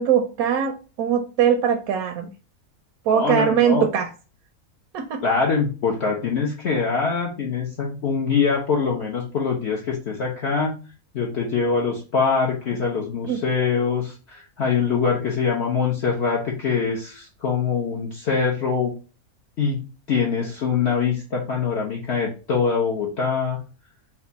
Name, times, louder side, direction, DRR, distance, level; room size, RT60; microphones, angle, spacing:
voice 1, 0.0-2.3 3.1-4.1 4.9-5.2 13.3-13.4, right 8 dB, 80° right, 4 dB, 1.1 m, -21 dB
voice 2, 3.1-3.9 5.2-10.7 11.1-18.9 19.6-19.8 20.1-23.6, left 5 dB, 55° left, -2 dB, 0.9 m, -23 dB
4.3 x 2.4 x 3.9 m, 0.34 s
omnidirectional pair, 1.6 m